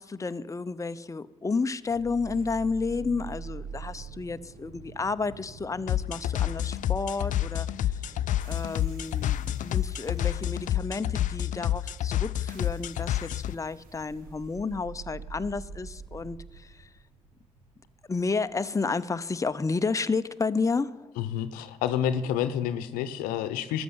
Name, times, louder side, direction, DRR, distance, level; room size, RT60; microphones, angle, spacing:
voice 1, 0.0-8.0 8.5-16.9 18.1-21.1, left 4 dB, 20° left, 12 dB, 0.7 m, -31 dB
sound 1, 1.9-19.9, right 5 dB, 75° right, 1.2 m, -46 dB
sound 2, 5.9-13.5, left 12 dB, 65° left, 0.4 m, -29 dB
voice 2, 21.2-23.8, left 9 dB, 85° left, 13 dB, 0.8 m, -29 dB
13.0 x 8.0 x 9.6 m, 1.1 s
hypercardioid pair, 45°, 14 cm